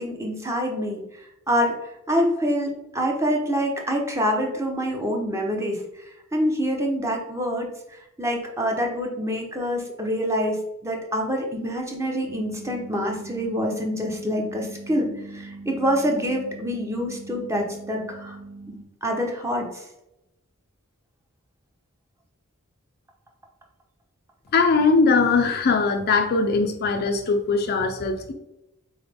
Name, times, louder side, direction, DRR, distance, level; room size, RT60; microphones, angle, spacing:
voice 1, 0.0-1.8 2.1-18.4 19.0-19.8, equal, 15° right, 1 dB, 0.7 m, -26 dB
sound 1, 12.3-18.8, right 3 dB, 65° right, 1.3 m, -41 dB
voice 2, 24.5-28.3, left 4 dB, 45° left, 6 dB, 0.4 m, -20 dB
3.9 x 3.9 x 3.4 m, 0.89 s
head